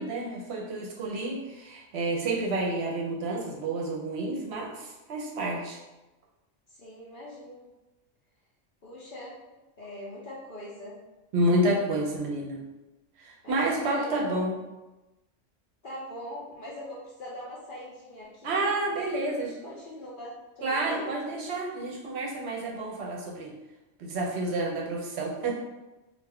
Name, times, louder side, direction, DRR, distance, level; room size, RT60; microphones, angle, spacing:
voice 1, 0.0-5.8 11.3-12.6 13.2-14.5 18.4-19.5 20.6-23.5 24.0-25.5, right 1 dB, 65° right, -2 dB, 0.8 m, -29 dB
voice 2, 6.7-7.7 8.8-9.4 9.8-11.0 11.8-11.9 13.4-14.3 15.8-21.1, left 1 dB, 60° left, -5 dB, 0.6 m, -42 dB
2.3 x 2.2 x 3.4 m, 1.1 s
omnidirectional pair, 1.3 m